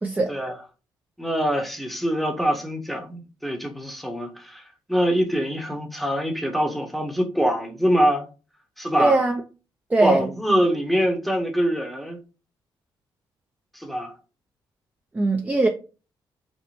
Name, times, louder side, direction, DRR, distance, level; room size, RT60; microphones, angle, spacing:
voice 1, 0.0-0.3 9.0-9.4 9.9-10.3 15.1-15.7, right 3 dB, 15° right, 0.4 m, -20 dB
voice 2, 1.2-4.6 4.9-8.3 8.8-9.2 10.0-12.2 13.7-14.1, equal, ahead, 0.8 m, -24 dB
4.1 x 2.1 x 3.0 m
cardioid pair, 85°, 9 cm